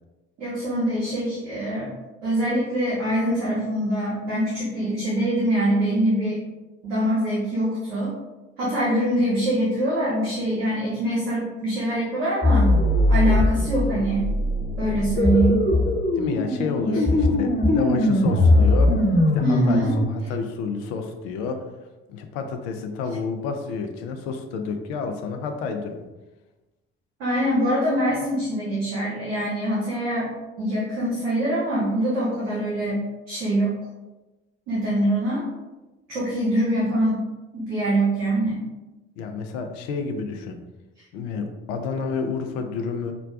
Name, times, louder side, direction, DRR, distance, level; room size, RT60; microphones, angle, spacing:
voice 1, 0.4-1.9 2.2-6.4 6.8-8.1 8.6-12.7 13.1-14.2 14.8-15.6 19.4-19.9 27.2-30.3 30.6-33.0 33.3-33.7 34.7-35.4 36.1-37.2 37.5-38.6, right 1 dB, 80° right, -7 dB, 1.0 m, -24 dB
sound 1, 12.4-20.1, left 1 dB, 30° left, 0.9 m, -20 dB
voice 2, 16.2-19.0 19.3-21.7 22.1-26.0 39.2-40.6 41.1-43.1, left 5 dB, 75° left, 5 dB, 0.6 m, -30 dB
5.8 x 2.2 x 2.4 m, 1.1 s
hypercardioid pair, 50°, 32 cm